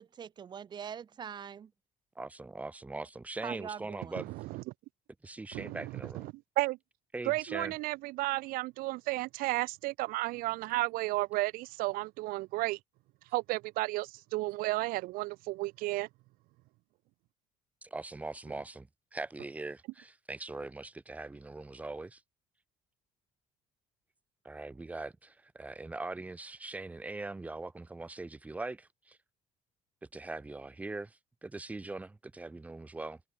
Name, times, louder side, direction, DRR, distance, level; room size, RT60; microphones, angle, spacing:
voice 1, 0.0-1.7 3.4-4.1, right 8 dB, 30° right, 1.2 m, -43 dB
voice 2, 2.2-4.2 5.2-6.3 7.1-7.7 17.8-22.2 24.4-29.2 30.1-33.2, right 2 dB, 10° right, 0.9 m, -41 dB
voice 3, 4.1-4.7 5.5-6.8 7.2-12.8 13.3-16.1, right 20 dB, 90° right, 0.8 m, -33 dB
cardioid pair, 165°, 15 cm